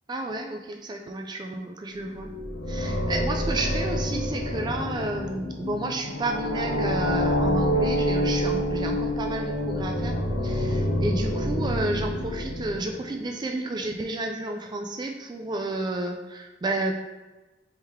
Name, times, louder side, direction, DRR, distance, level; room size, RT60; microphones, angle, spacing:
voice 1, 0.1-2.3 2.7-16.9, right 2 dB, 25° right, 3 dB, 0.3 m, -31 dB
sound 1, 2.0-13.2, equal, 70° left, 0.7 m, -27 dB
3.6 x 3.5 x 4.3 m, 1.1 s
head